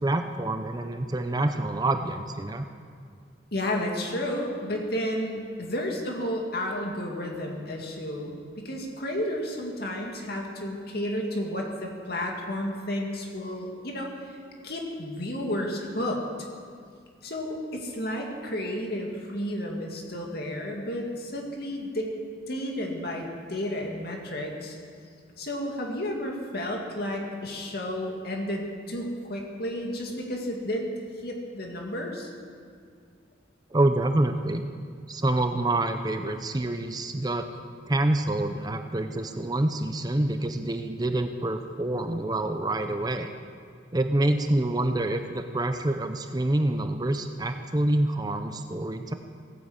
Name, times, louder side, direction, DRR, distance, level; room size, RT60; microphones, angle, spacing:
voice 1, 0.0-2.7 33.7-34.6 35.1-37.5 37.9-43.3 43.9-49.1, right 1 dB, 20° right, 7 dB, 0.6 m, -27 dB
voice 2, 3.5-14.3 14.6-16.2 17.2-22.1 22.5-24.8 25.4-30.9 31.2-32.3, left 1 dB, 55° left, 0 dB, 2.4 m, -32 dB
17.0 x 9.6 x 8.1 m, 2.2 s
head